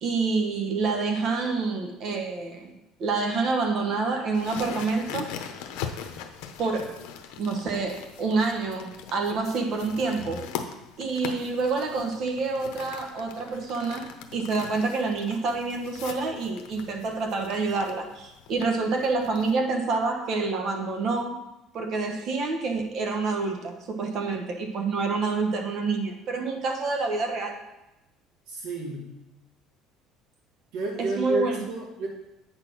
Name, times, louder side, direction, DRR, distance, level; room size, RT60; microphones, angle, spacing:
voice 1, 0.0-2.7 3.0-5.3 6.6-7.0 7.4-10.5 11.0-21.4 21.7-27.6 31.0-31.7, right 4 dB, 45° right, 3 dB, 1.3 m, -27 dB
sound 1, 4.3-19.5, left 8 dB, 85° left, 0.8 m, -41 dB
voice 2, 28.5-29.0 30.7-32.1, right 2 dB, 85° right, -4 dB, 2.1 m, -30 dB
8.6 x 4.3 x 6.0 m, 0.94 s
cardioid pair, 150°, 0 cm